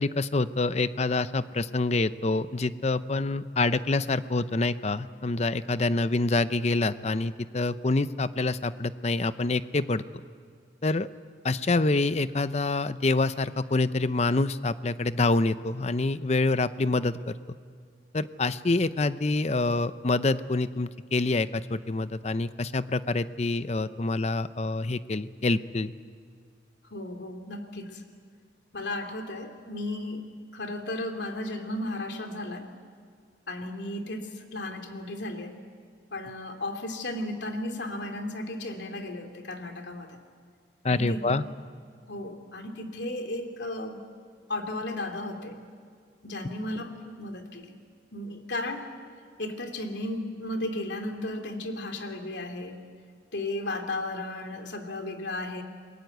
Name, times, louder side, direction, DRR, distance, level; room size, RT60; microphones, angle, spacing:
voice 1, 0.0-10.0 10.8-11.1 11.4-17.4 18.1-25.9 40.8-41.4, left 2 dB, 40° left, 14 dB, 0.6 m, -26 dB
voice 2, 26.9-28.0 28.7-30.2 30.5-32.7 33.5-35.6 36.1-40.2 40.8-41.4 42.1-44.0 44.5-45.6 46.2-47.8 48.1-48.9 49.4-52.8 53.3-55.6, left 1 dB, 85° left, 5 dB, 2.7 m, -34 dB
28.0 x 21.0 x 8.0 m, 2.1 s
head